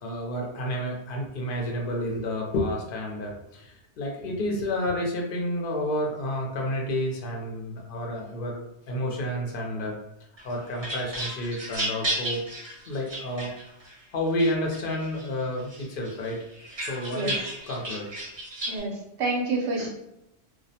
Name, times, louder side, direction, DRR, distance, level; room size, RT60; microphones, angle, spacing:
voice 1, 0.0-10.0 10.4-12.4 12.9-13.5 14.1-16.4 16.8-17.4 17.7-18.1 19.8-19.9, left 1 dB, 60° left, -1 dB, 0.7 m, -30 dB
sound 1, 10.4-13.9 14.4-15.3 15.7-18.8, right 1 dB, 30° right, 0.6 m, -34 dB
voice 2, 18.7-19.9, right 3 dB, 85° right, -1 dB, 0.9 m, -28 dB
2.3 x 2.0 x 2.7 m, 0.87 s
omnidirectional pair, 1.1 m